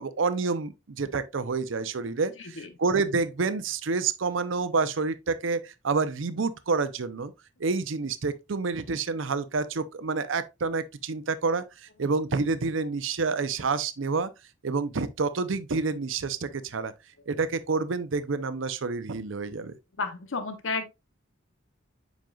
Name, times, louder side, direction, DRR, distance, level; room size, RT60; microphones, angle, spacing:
voice 1, 0.0-7.3 7.6-11.6 12.0-14.3 14.6-16.9 17.3-19.7, right 4 dB, 75° right, 0.6 m, -28 dB
voice 2, 2.4-2.7 20.0-20.9, left 4 dB, 80° left, 0.9 m, -32 dB
7.6 x 5.3 x 2.3 m
head